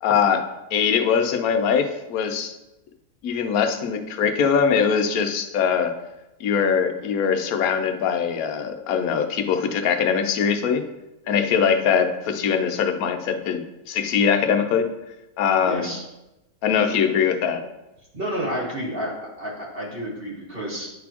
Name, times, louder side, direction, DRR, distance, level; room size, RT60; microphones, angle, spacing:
voice 1, 0.0-2.5 3.2-6.0 6.4-10.8 11.3-14.9 15.4-15.9 16.6-17.6, left 7 dB, 70° left, 7 dB, 1.0 m, -22 dB
voice 2, 15.6-16.0 18.1-20.9, equal, 35° right, -5 dB, 1.9 m, -30 dB
10.5 x 4.1 x 2.9 m, 0.96 s
omnidirectional pair, 1.8 m